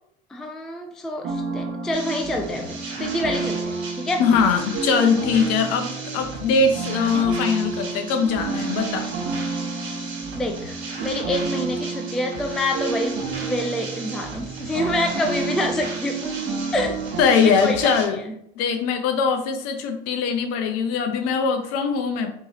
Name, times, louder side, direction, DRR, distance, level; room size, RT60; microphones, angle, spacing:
voice 1, 0.3-4.2 10.3-16.3 16.7-17.0 17.4-18.2, left 1 dB, ahead, 4 dB, 0.3 m, -27 dB
sound 1, 1.2-17.2, right 4 dB, 40° right, 1.1 m, -30 dB
sound 2, 1.9-18.0, right 3 dB, 85° right, 1.5 m, -37 dB
voice 2, 4.2-9.1 17.2-18.2 18.6-22.3, left 5 dB, 50° left, 6 dB, 0.8 m, -21 dB
4.6 x 3.1 x 2.8 m, 0.73 s
hypercardioid pair, 80°, 32 cm